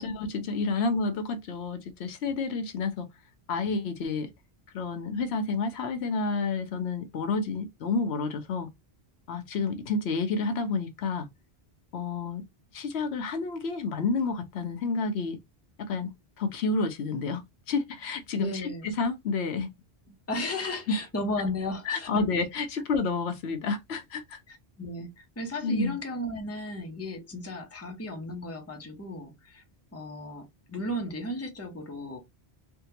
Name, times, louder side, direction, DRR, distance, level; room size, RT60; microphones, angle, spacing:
voice 1, 0.0-3.1 3.5-4.3 4.7-8.7 9.3-11.3 11.9-12.4 12.7-15.4 15.8-16.1 16.4-17.4 17.7-19.7 20.9-21.0 21.9-24.4 25.6-26.0, left 4 dB, 85° left, 1.0 m, -30 dB
voice 2, 18.3-18.9 20.1-22.2 24.5-29.6 29.9-32.2, left 1 dB, 15° left, 0.6 m, -35 dB
3.6 x 2.2 x 2.7 m
omnidirectional pair, 1.1 m